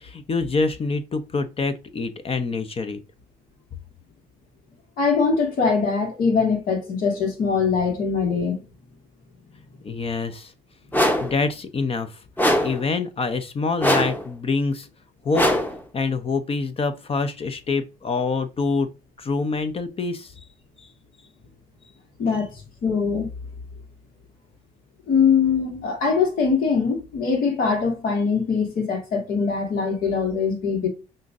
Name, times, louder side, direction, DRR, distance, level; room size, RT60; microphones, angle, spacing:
voice 1, 0.0-3.0 9.8-10.5 11.2-12.2 12.6-14.9 15.2-15.5 15.9-18.9 19.2-20.3 20.8-20.9 22.2-22.4, left 4 dB, 40° left, 0.7 m, -26 dB
voice 2, 5.0-8.6 22.2-23.3 25.1-30.9, left 5 dB, 70° left, 1.7 m, -22 dB
sound 1, 10.9-11.4 12.4-12.9 13.8-14.3 15.3-15.8, equal, 10° left, 0.9 m, -21 dB
5.6 x 2.6 x 2.5 m
supercardioid pair, 75°, 15 cm